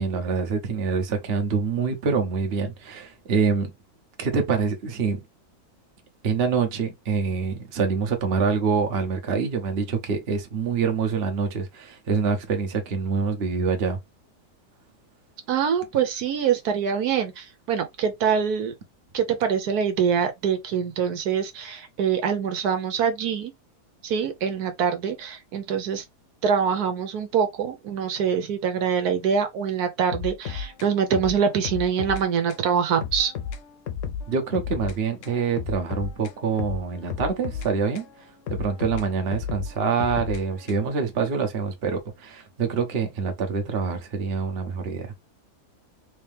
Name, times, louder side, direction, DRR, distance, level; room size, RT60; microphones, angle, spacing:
voice 1, 0.0-3.7 4.2-5.2 6.2-14.0 34.3-38.1 38.5-45.1, right 5 dB, 45° right, 1.0 m, -25 dB
voice 2, 15.5-18.7 19.1-23.5 24.0-26.0 26.4-33.3, right 7 dB, 75° right, 1.3 m, -24 dB
sound 1, 30.1-32.2 32.5-32.7 33.0-35.0 35.2-38.1 38.5-41.0, left 7 dB, 60° left, 0.9 m, -33 dB
3.6 x 2.8 x 3.4 m
omnidirectional pair, 1.6 m